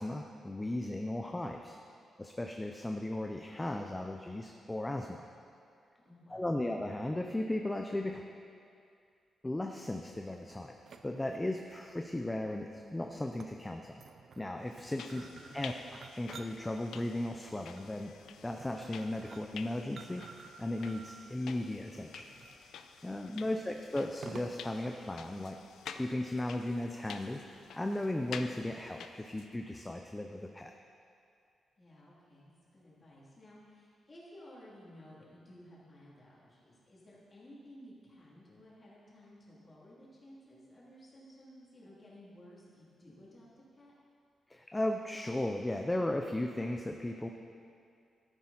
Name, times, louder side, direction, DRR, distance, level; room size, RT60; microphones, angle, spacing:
voice 1, 0.0-1.8 2.2-5.2 6.3-8.3 9.4-10.8 11.0-13.9 14.4-15.3 15.5-18.1 18.4-20.2 20.6-22.3 23.0-25.6 25.9-27.4 27.7-30.7 44.5-47.3, left 1 dB, 10° left, 3 dB, 0.5 m, -36 dB
voice 2, 6.0-6.6 15.0-15.6 23.3-23.6 31.8-43.5 43.7-43.9, equal, 25° left, -7 dB, 2.9 m, -56 dB
sound 1, 10.1-24.8, right 5 dB, 55° right, 0.5 m, -54 dB
sound 2, 14.7-29.6, left 7 dB, 90° left, 0.5 m, -50 dB
13.5 x 9.4 x 4.2 m, 2.4 s
wide cardioid pair, 135°, 0 cm